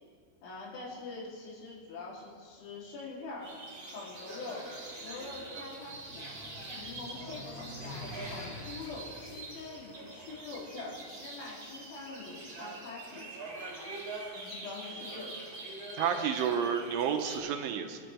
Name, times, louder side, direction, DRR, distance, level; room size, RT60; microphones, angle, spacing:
voice 1, 0.4-3.5 3.9-4.7 5.0-6.2 6.7-13.3 14.4-15.4, left 3 dB, 70° left, -5 dB, 5.4 m, -44 dB
sound 1, 3.4-17.4, right 2 dB, 30° right, 2.1 m, -44 dB
sound 2, 4.8-11.1, left 2 dB, 90° left, 1.3 m, -48 dB
voice 2, 16.0-18.0, right 7 dB, 85° right, 6 dB, 3.3 m, -30 dB
25.0 x 12.5 x 3.4 m, 2.2 s
omnidirectional pair, 5.7 m